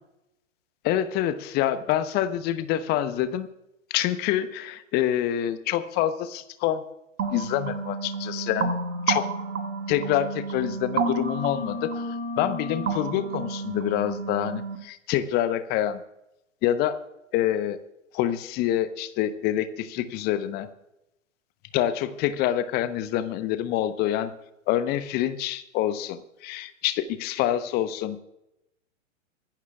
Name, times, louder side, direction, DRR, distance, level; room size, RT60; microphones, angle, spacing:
voice 1, 0.8-3.5 3.9-6.8 7.3-8.7 9.1-9.3 9.9-16.0 16.6-17.0 17.3-17.8 18.1-20.7 21.7-24.3 24.7-28.2, left 12 dB, 25° left, 13 dB, 0.9 m, -26 dB
sound 1, 7.2-14.8, right 3 dB, 70° right, 1.8 m, -30 dB
25.5 x 11.5 x 2.4 m, 0.86 s
figure-of-eight pair, 105°, 38 cm